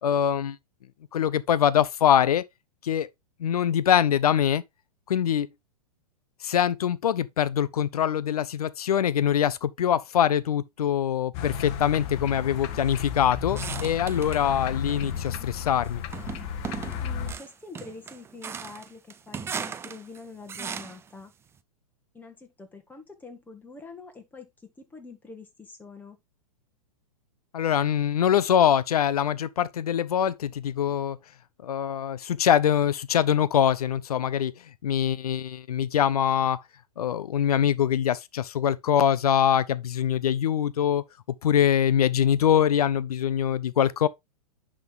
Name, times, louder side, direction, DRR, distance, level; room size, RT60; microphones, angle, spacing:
voice 1, 0.0-0.6 1.1-2.4 2.8-3.1 3.4-4.6 5.1-5.5 6.4-16.0 27.5-31.2 31.6-34.5 34.8-36.6 37.0-41.0 41.4-44.1, left 9 dB, 70° left, 0.7 m, -23 dB
sound 1, 11.3-17.3, left 8 dB, 45° left, 1.1 m, -33 dB
sound 2, 13.5-14.5 14.9-15.5 16.1-21.1, right 7 dB, 15° right, 0.4 m, -37 dB
voice 2, 17.0-21.3 22.1-24.5 24.8-26.2, left 4 dB, 10° left, 1.9 m, -45 dB
10.5 x 3.7 x 3.6 m
hypercardioid pair, 115°, 20 cm